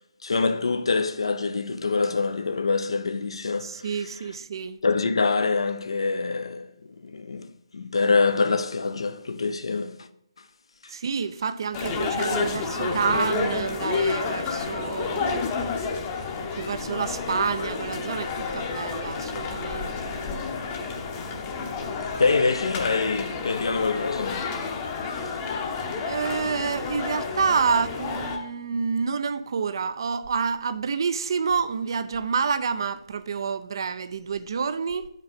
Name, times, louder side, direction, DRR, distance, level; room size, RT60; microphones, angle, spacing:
voice 1, 0.2-4.3 4.8-10.1 10.8-10.9 22.2-24.5, left 4 dB, 65° left, 0.5 m, -25 dB
voice 2, 3.6-4.8 10.9-15.4 16.5-20.3 26.0-35.1, right 5 dB, 50° right, 0.4 m, -28 dB
sound 1, 11.7-28.4, left 4 dB, 25° left, 0.8 m, -30 dB
7.1 x 5.2 x 4.1 m
figure-of-eight pair, 140°, 3 cm